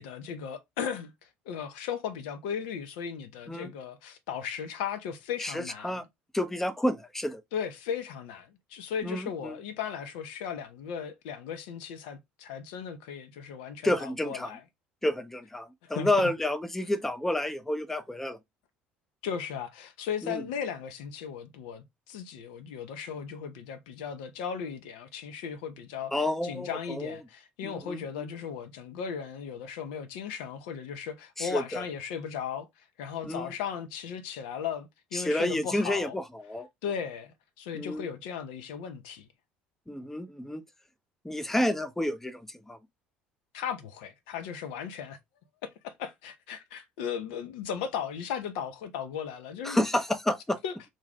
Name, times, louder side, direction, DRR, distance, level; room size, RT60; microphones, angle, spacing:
voice 1, 0.0-6.0 7.5-14.6 15.8-16.3 19.2-26.1 26.4-32.7 33.0-36.2 36.8-39.3 43.5-45.2 45.6-49.9 50.6-50.7, left 7 dB, 65° left, 0.5 m, -36 dB
voice 2, 5.4-6.0 6.3-7.4 9.0-9.6 13.8-14.5 15.0-18.4 20.2-20.4 26.1-27.2 27.6-28.3 31.4-31.8 33.3-33.5 35.1-36.7 37.7-38.1 39.9-40.6 41.2-42.8 49.6-50.6, left 1 dB, 5° left, 0.5 m, -30 dB
2.6 x 2.2 x 3.3 m
figure-of-eight pair, 60°, 5 cm